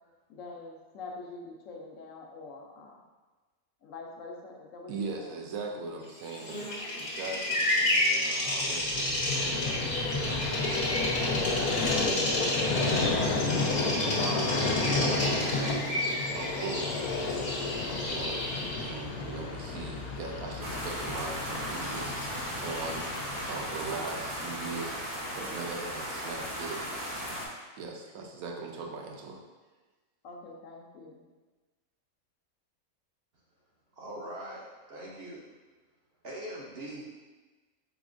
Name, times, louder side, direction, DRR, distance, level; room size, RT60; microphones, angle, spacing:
voice 1, 0.3-3.0 3.8-4.9 5.2-5.4 6.8-7.2 30.2-31.2, left 3 dB, 70° left, 0 dB, 0.9 m, -45 dB
voice 2, 4.9-11.8 12.0-14.8 15.4-17.1 17.9-18.5 18.8-22.2 22.6-23.1 23.4-26.8 27.8-29.4, right 4 dB, 80° right, 1 dB, 1.0 m, -40 dB
Bird vocalization bird call bird song, 6.3-18.9, left 1 dB, 40° left, 0.7 m, -31 dB
Vehicle, 8.5-24.8, left 3 dB, 90° left, 1.1 m, -32 dB
sound 1, 20.6-27.5, equal, 30° right, 0.4 m, -36 dB
voice 3, 33.9-35.5 36.2-37.0, right 1 dB, 60° right, -4 dB, 0.7 m, -41 dB
4.0 x 3.6 x 2.5 m, 1.3 s
omnidirectional pair, 1.5 m